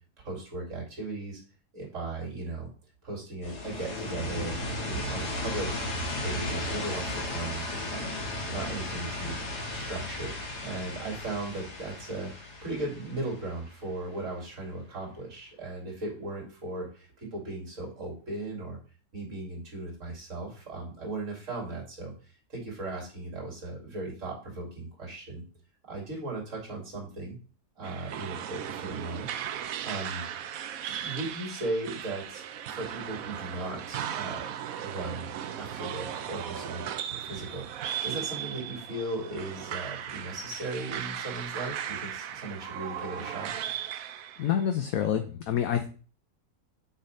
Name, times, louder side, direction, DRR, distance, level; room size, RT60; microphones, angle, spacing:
voice 1, 0.2-1.4 1.7-2.7 3.0-4.6 4.8-5.7 6.2-8.1 8.5-10.3 10.6-18.8 19.1-22.1 22.5-25.4 25.9-27.4 27.8-29.3 29.8-30.2 30.9-35.3 35.6-36.9 37.2-43.5, right 2 dB, 50° right, -2 dB, 2.9 m, -37 dB
sound 1, 3.4-14.1, left 1 dB, 90° left, 2.6 m, -35 dB
sound 2, 27.8-44.6, right 9 dB, 70° right, 1.0 m, -37 dB
voice 2, 44.4-45.9, left 9 dB, 65° left, 7 dB, 1.1 m, -27 dB
8.2 x 4.1 x 5.3 m, 0.39 s
omnidirectional pair, 1.7 m